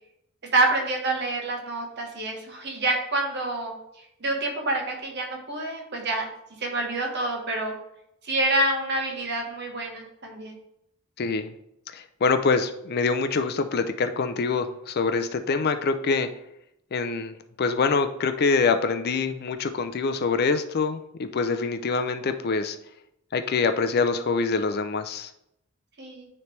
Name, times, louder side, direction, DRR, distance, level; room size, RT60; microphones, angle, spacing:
voice 1, 0.5-3.8 4.2-6.3 6.6-7.7 8.2-10.6 26.0-26.3, right 2 dB, 55° right, 2 dB, 1.3 m, -27 dB
voice 2, 11.2-11.5 11.9-16.3 16.9-22.8 23.3-25.3, left 4 dB, 50° left, 9 dB, 0.4 m, -25 dB
9.3 x 3.3 x 3.2 m, 0.79 s
head